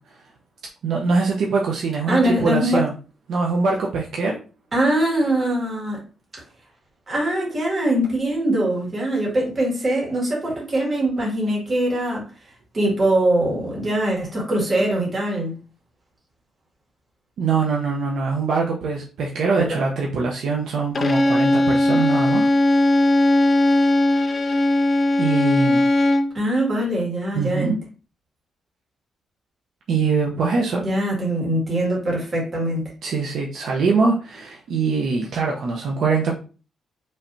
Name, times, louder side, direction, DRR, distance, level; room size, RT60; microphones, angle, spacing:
voice 1, 0.8-2.9 3.3-4.4 17.4-22.5 25.2-25.9 27.3-27.8 29.9-30.8 33.0-36.4, right 4 dB, 60° right, -1 dB, 0.8 m, -23 dB
voice 2, 2.0-2.8 4.7-6.0 7.1-12.3 12.7-15.5 19.6-19.8 26.3-27.7 30.8-32.9, right 1 dB, 30° right, -3 dB, 2.1 m, -22 dB
Bowed string instrument, 21.0-26.4, left 1 dB, 25° left, 0.4 m, -18 dB
5.4 x 3.3 x 2.7 m, 0.35 s
cardioid pair, 175°, 0 cm